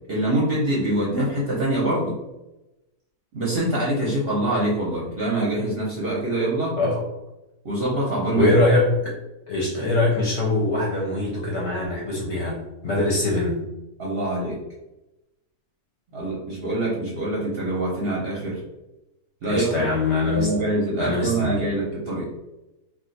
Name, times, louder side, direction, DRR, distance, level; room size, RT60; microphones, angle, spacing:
voice 1, 0.1-2.2 3.3-6.8 7.6-8.5 12.9-13.0 14.0-14.6 16.1-18.6 19.4-19.8 20.2-22.3, right 1 dB, 55° right, -5 dB, 0.7 m, -24 dB
voice 2, 8.3-9.1 9.5-13.6 19.5-20.5 21.0-21.7, left 2 dB, 60° left, -3 dB, 0.8 m, -23 dB
2.4 x 2.4 x 3.9 m, 0.97 s
omnidirectional pair, 1.7 m